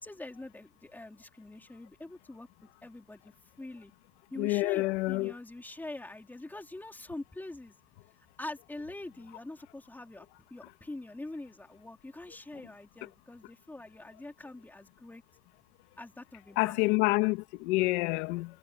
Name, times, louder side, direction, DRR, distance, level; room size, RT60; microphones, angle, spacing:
voice 1, 0.0-2.5 2.8-3.9 4.3-7.7 8.2-15.2 16.0-16.8, left 2 dB, 5° left, 3.6 m, -44 dB
voice 2, 4.4-5.3 16.6-18.5, left 22 dB, 60° left, 1.8 m, -28 dB
cardioid pair, 175°, 37 cm